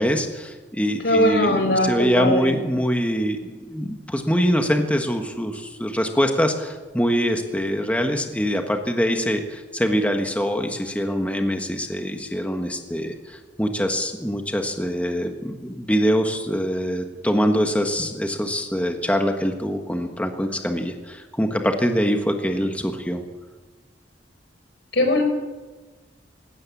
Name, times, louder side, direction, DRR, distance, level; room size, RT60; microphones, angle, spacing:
voice 1, 0.0-23.2, equal, 10° left, 4 dB, 1.5 m, -24 dB
voice 2, 1.0-2.6 24.9-25.2, left 1 dB, 75° left, 6 dB, 4.8 m, -20 dB
19.0 x 17.5 x 8.5 m, 1.3 s
head